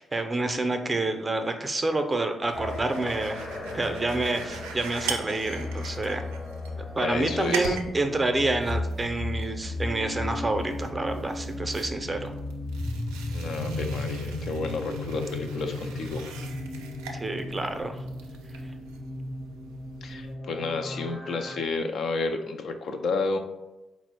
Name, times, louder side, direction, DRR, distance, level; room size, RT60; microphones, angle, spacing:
voice 1, 0.0-6.2 7.0-12.3 17.1-18.0, right 2 dB, 30° right, 6 dB, 0.6 m, -28 dB
sound 1, 2.4-20.3, right 5 dB, 80° right, 0.4 m, -42 dB
sound 2, 2.5-21.6, left 2 dB, 35° left, 0.7 m, -35 dB
voice 2, 7.0-7.8 13.3-16.2 20.0-23.4, left 3 dB, 65° left, 5 dB, 0.4 m, -31 dB
4.3 x 2.0 x 4.3 m, 1.0 s
hypercardioid pair, 40°, 0 cm